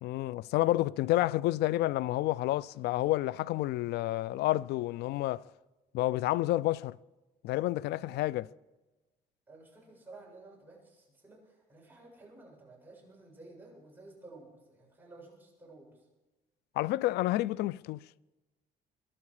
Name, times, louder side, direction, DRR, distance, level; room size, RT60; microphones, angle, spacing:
voice 1, 0.0-5.4 5.9-7.0 7.4-8.4 16.8-18.0, left 16 dB, 75° left, 0.4 m, -29 dB
voice 2, 9.5-16.0, right 2 dB, 10° right, 7.3 m, -53 dB
22.5 x 12.0 x 4.9 m
cardioid pair, 110°, 17 cm